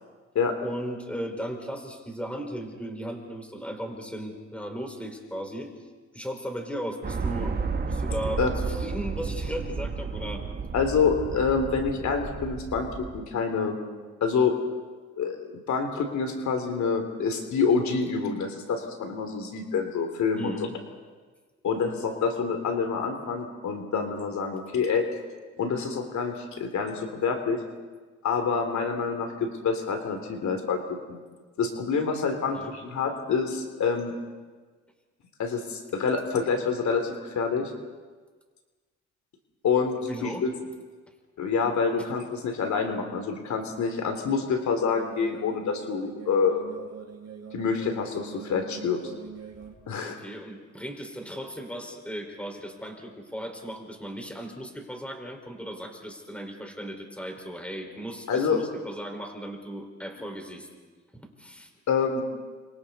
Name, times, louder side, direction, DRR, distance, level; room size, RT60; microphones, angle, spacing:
voice 1, 0.6-5.7 6.1-10.4 20.3-20.8 32.5-32.7 40.1-40.4 50.0-60.7 61.1-61.7, equal, 5° left, 3 dB, 4.8 m, -36 dB
sound 1, 7.0-13.2, right 4 dB, 30° right, 1.5 m, -32 dB
voice 2, 10.7-12.9 13.1-13.8 14.2-14.6 15.2-20.5 21.6-25.0 25.6-27.6 28.2-30.8 31.1-31.2 31.6-34.1 35.4-37.7 39.6-40.5 41.4-46.6 47.5-49.0 49.9-50.1 58.3-58.6 61.9-62.2, left 5 dB, 70° left, 5 dB, 3.1 m, -27 dB
sound 2, 44.8-49.7, right 7 dB, 55° right, 5.4 m, -43 dB
30.0 x 26.0 x 4.2 m, 1.4 s
cardioid pair, 90°, 30 cm